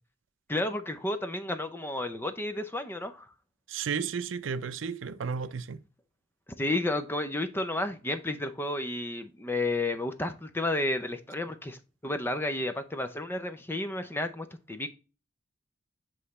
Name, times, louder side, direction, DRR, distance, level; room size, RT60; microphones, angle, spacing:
voice 1, 0.5-3.3 6.6-14.9, left 2 dB, 10° left, 0.5 m, -32 dB
voice 2, 3.7-5.8, right 6 dB, 75° right, 0.5 m, -33 dB
7.9 x 3.2 x 4.0 m
head